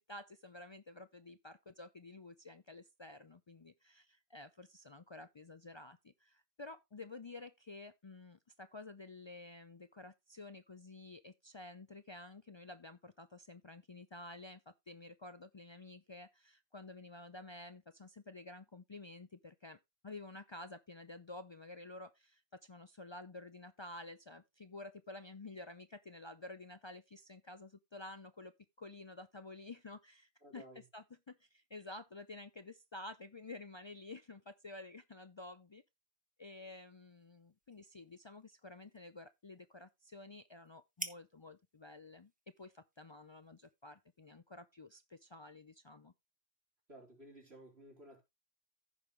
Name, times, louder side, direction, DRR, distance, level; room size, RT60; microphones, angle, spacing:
voice 1, 0.0-28.5 28.8-30.6 30.9-35.8 36.4-42.3 42.6-46.1, left 2 dB, 40° left, 0.4 m, -51 dB
voice 2, 30.4-30.9 46.9-48.2, right 1 dB, 85° right, 3.8 m, -55 dB
sound 1, 36.7-44.4, right 1 dB, 10° right, 1.0 m, -54 dB
15.0 x 5.3 x 3.1 m
omnidirectional pair, 1.1 m